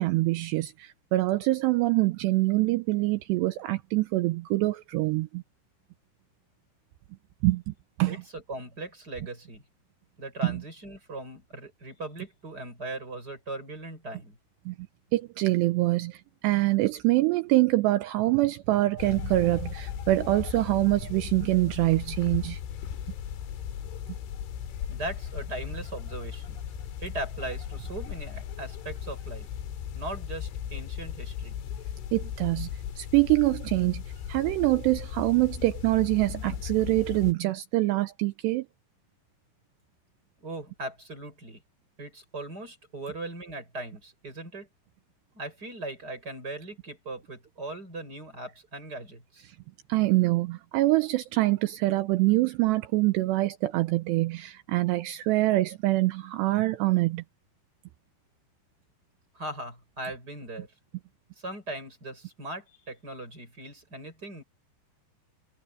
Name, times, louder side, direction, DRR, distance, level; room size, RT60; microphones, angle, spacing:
voice 1, 0.0-5.4 7.4-7.7 8.0-8.2 10.4-10.6 14.7-14.8 15.1-22.6 32.1-34.0 34.3-38.7 49.9-57.2, right 19 dB, 80° right, 2.7 m, -25 dB
voice 2, 8.1-9.6 10.2-14.4 24.9-26.6 27.0-29.5 29.9-31.6 40.4-41.6 42.0-44.7 45.3-49.5 59.4-60.7 61.4-64.4, right 2 dB, 20° right, 7.0 m, -39 dB
sound 1, 19.0-37.3, left 9 dB, 85° left, 4.6 m, -37 dB
omnidirectional pair, 5.3 m